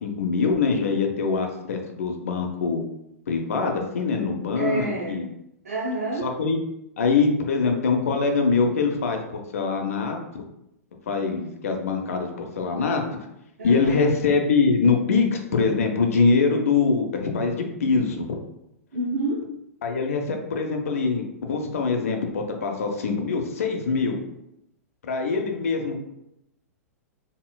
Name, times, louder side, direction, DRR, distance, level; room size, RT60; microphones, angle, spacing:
voice 1, 0.0-2.8 3.3-5.3 6.2-6.6 7.0-10.4 11.1-13.0 13.6-18.4 19.8-24.2 25.1-26.0, left 4 dB, 65° left, 3 dB, 0.7 m, -23 dB
voice 2, 4.5-5.3 5.6-6.3 13.6-14.1 18.9-19.5, right 2 dB, 70° right, -4 dB, 0.9 m, -28 dB
4.2 x 3.7 x 2.3 m, 0.82 s
figure-of-eight pair, 105°, 8 cm